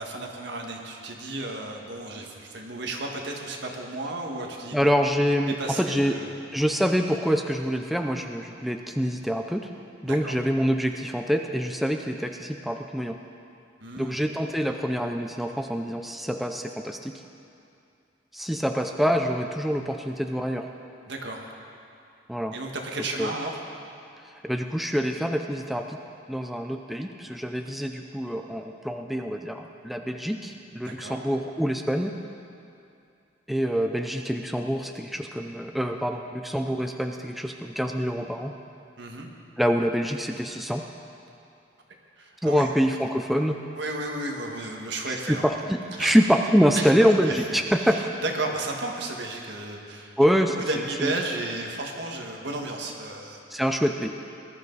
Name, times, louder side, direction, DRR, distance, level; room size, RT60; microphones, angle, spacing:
voice 1, 0.0-4.9 5.5-6.3 10.0-10.4 13.8-14.2 21.1-21.5 22.5-23.5 30.8-31.2 39.0-39.3 42.2-42.7 43.7-45.4 46.0-46.2 46.7-46.9 47.3-50.1 50.6-53.4, right 2 dB, 65° right, 1 dB, 1.7 m, -33 dB
voice 2, 4.7-6.2 6.5-9.7 10.0-13.2 13.9-17.1 18.3-20.7 22.3-22.6 23.2-23.3 24.4-26.0 26.3-32.1 33.5-38.5 39.6-40.8 42.4-43.6 45.0-48.1 50.2-50.6 51.0-51.1 53.5-54.1, equal, ahead, 4 dB, 0.5 m, -25 dB
19.5 x 12.5 x 4.0 m, 2.6 s
head